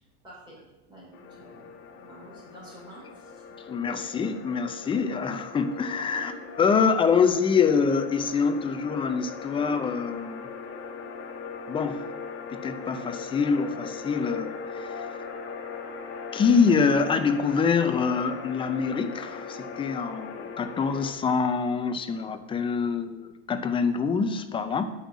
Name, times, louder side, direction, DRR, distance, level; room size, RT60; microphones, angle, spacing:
voice 1, 0.2-0.6 0.9-3.4 3.8-4.0 6.1-6.4, right 2 dB, 15° right, -5 dB, 3.6 m, -48 dB
sound 1, 1.1-21.1, left 5 dB, 35° left, 1.3 m, -40 dB
voice 2, 3.7-6.3 6.6-10.4 11.7-12.0 12.5-14.9 16.3-24.9, left 5 dB, 15° left, 9 dB, 0.5 m, -25 dB
8.7 x 5.5 x 7.4 m, 1.0 s
supercardioid pair, 140°, 35 cm